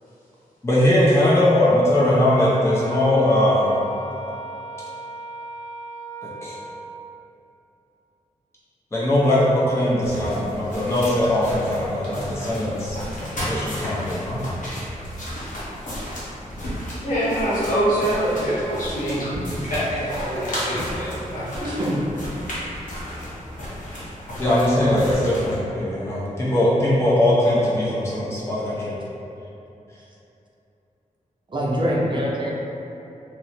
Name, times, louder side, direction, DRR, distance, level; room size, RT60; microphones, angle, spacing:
voice 1, 0.6-3.8 6.4-6.6 8.9-13.0 13.4-14.4 24.4-29.0, left 1 dB, 20° left, -8 dB, 0.6 m, -20 dB
Wind instrument woodwind instrument, 2.6-7.0, right 3 dB, 20° right, 1.0 m, -36 dB
sound 1, 10.0-25.6, equal, 70° left, 0.9 m, -33 dB
voice 2, 17.0-21.8, right 1 dB, 85° left, -10 dB, 1.2 m, -25 dB
voice 3, 21.6-22.0 31.5-32.5, equal, 35° right, -4 dB, 0.6 m, -24 dB
2.9 x 2.1 x 4.0 m, 2.9 s
wide cardioid pair, 120°, 14 cm